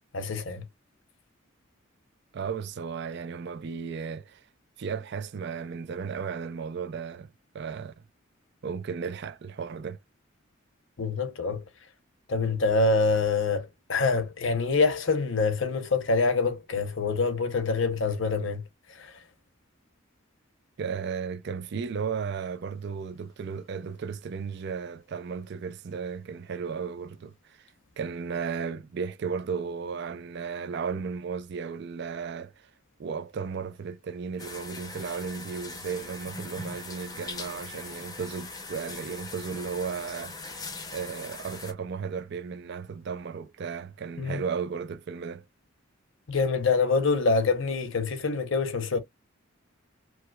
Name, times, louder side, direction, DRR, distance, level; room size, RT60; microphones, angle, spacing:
voice 1, 0.1-0.6 11.0-11.6 12.3-18.6 18.9-19.2 44.2-44.4 46.3-49.0, left 4 dB, 65° left, 0.8 m, -26 dB
voice 2, 2.3-4.5 4.8-8.0 8.6-10.0 20.8-32.7 33.0-40.5 40.9-45.5, right 6 dB, 55° right, 0.4 m, -35 dB
sound 1, 34.4-41.7, left 3 dB, 20° left, 0.6 m, -41 dB
4.8 x 2.0 x 2.3 m
head